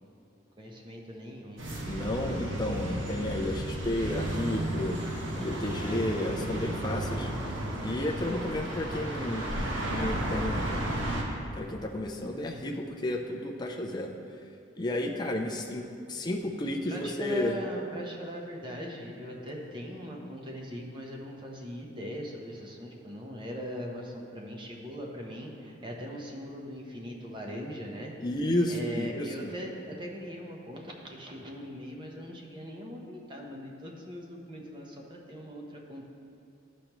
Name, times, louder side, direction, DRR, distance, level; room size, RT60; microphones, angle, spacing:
voice 1, 0.6-1.6 16.9-28.1 28.7-36.1, equal, 25° right, -1 dB, 0.9 m, -40 dB
sound 1, 1.6-11.2, right 1 dB, 75° right, 1.1 m, -33 dB
voice 2, 1.9-5.0 5.4-7.3 7.8-10.8 11.5-14.2 14.8-17.6 28.2-29.5, left 1 dB, 20° left, 1 dB, 0.5 m, -32 dB
13.0 x 5.1 x 3.0 m, 2.8 s
head